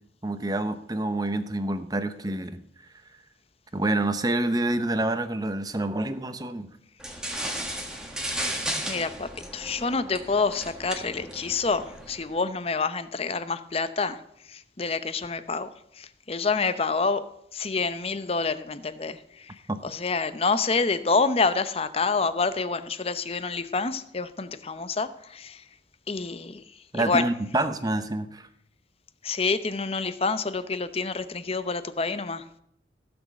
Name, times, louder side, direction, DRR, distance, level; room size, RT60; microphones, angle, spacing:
voice 1, 0.2-2.6 3.7-6.7 19.7-19.8 26.9-28.5, right 2 dB, 20° right, 10 dB, 0.8 m, -27 dB
sound 1, 7.0-12.3, right 1 dB, 5° right, 1.6 m, -35 dB
voice 2, 8.9-17.3 17.5-25.6 26.1-27.3 29.2-32.5, left 4 dB, 30° left, 12 dB, 0.7 m, -28 dB
15.5 x 6.3 x 7.5 m, 0.71 s
head